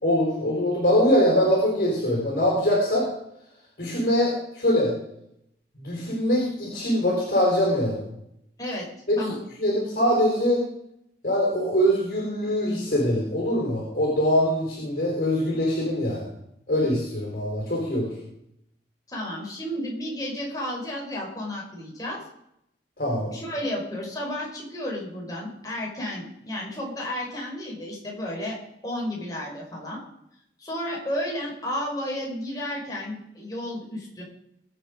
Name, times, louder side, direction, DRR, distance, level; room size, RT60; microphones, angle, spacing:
voice 1, 0.0-3.1 3.8-4.9 5.7-8.0 9.1-10.6 11.2-16.3 16.7-18.1 23.0-23.3, equal, 50° left, -3 dB, 4.9 m, -23 dB
voice 2, 19.1-22.2 23.3-28.6 28.8-30.0 30.6-34.2, left 1 dB, 20° left, -3 dB, 5.1 m, -32 dB
22.5 x 8.0 x 5.2 m, 0.78 s
head